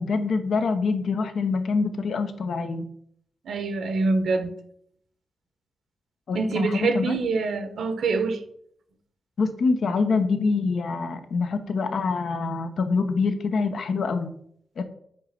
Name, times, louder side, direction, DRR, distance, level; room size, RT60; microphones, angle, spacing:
voice 1, 0.0-2.9 6.3-7.2 9.4-14.3 14.8-14.9, left 4 dB, 70° left, 0.8 m, -25 dB
voice 2, 3.4-4.5 6.3-8.4, right 3 dB, 85° right, 0.9 m, -25 dB
5.5 x 5.1 x 5.7 m
wide cardioid pair, 115°, 0 cm